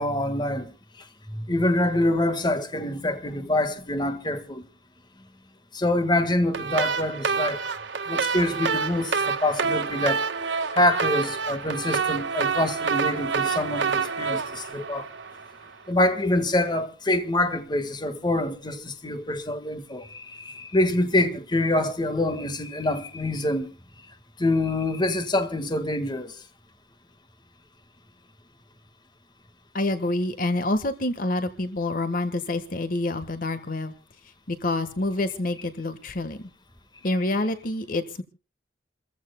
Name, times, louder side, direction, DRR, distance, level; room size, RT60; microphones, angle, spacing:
voice 1, 0.0-4.6 5.7-7.6 8.1-15.1 15.9-23.7 24.4-26.4, left 1 dB, 25° left, 1.6 m, -26 dB
sound 1, 6.5-15.6, right 5 dB, 85° right, 1.7 m, -27 dB
voice 2, 29.7-33.9 34.5-36.5 37.0-38.2, left 2 dB, 50° left, 1.4 m, -27 dB
29.0 x 15.0 x 2.2 m
head